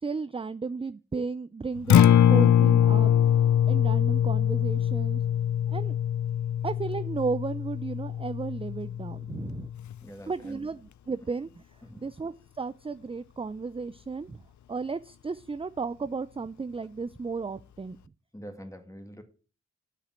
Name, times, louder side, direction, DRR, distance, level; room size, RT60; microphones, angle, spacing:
voice 1, 0.0-5.2 5.7-6.0 6.6-9.7 10.3-18.0, right 4 dB, 20° right, 0.4 m, -34 dB
Acoustic guitar, 1.8-10.0, left 10 dB, 80° left, 0.5 m, -23 dB
voice 2, 10.0-10.6 11.9-12.0 18.3-19.2, equal, 10° left, 2.0 m, -44 dB
8.6 x 5.1 x 7.4 m
cardioid pair, 55°, 29 cm